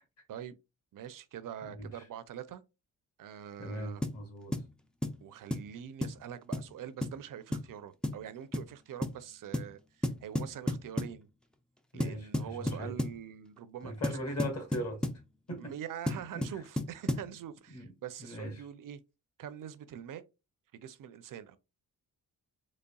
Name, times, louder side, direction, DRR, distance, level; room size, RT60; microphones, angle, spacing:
voice 1, 0.9-2.6 3.2-4.0 5.2-11.3 11.9-14.1 15.6-19.0 19.4-20.2 20.7-21.6, right 9 dB, 60° right, 0.5 m, -44 dB
voice 2, 1.6-2.1 3.6-4.5 11.9-13.0 13.8-15.1 15.5-15.7 16.1-16.6 17.7-17.9 18.2-18.7, equal, 45° left, 1.6 m, -39 dB
sound 1, 4.0-4.2 4.5-4.7 5.0-5.2 5.5-5.7 6.0-6.2 6.5-6.7 7.0-7.2 7.5-7.7 8.0-8.2 8.5-8.7 9.0-9.2 9.5-9.7 10.0-11.2 12.0-13.2 14.0-15.2 16.1-17.3, left 1 dB, 5° left, 0.3 m, -33 dB
4.0 x 3.2 x 2.3 m
cardioid pair, 110°, 36 cm